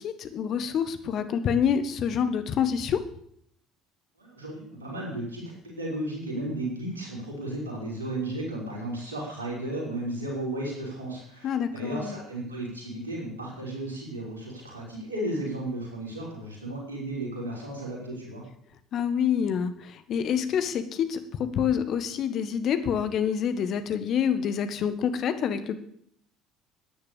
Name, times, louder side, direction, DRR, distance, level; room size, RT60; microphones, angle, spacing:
voice 1, 0.0-3.0 11.4-12.1 18.9-25.8, left 8 dB, 50° left, 11 dB, 1.5 m, -27 dB
voice 2, 4.2-18.4, right 1 dB, 85° right, -3 dB, 5.7 m, -34 dB
13.5 x 10.5 x 7.0 m, 0.68 s
figure-of-eight pair, 60°, 0 cm